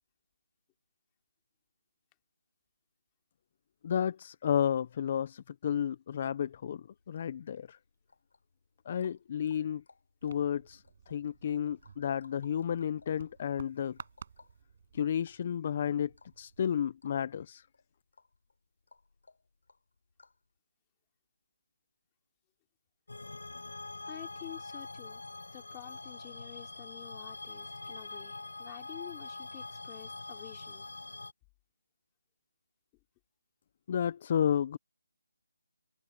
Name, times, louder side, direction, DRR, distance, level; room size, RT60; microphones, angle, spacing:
voice 1, 3.8-7.8 8.9-9.8 10.2-14.0 14.9-17.7 33.9-34.8, left 9 dB, 30° left, 0.6 m, -32 dB
sound 1, 6.9-20.5, left 3 dB, 65° left, 7.3 m, -63 dB
sound 2, 10.2-16.8, right 6 dB, 35° right, 5.7 m, -54 dB
sound 3, 23.1-31.3, left 3 dB, 85° left, 4.0 m, -44 dB
voice 2, 24.1-25.2 25.5-30.9, left 28 dB, 15° left, 2.9 m, -49 dB
open air
figure-of-eight pair, 170°, 0 cm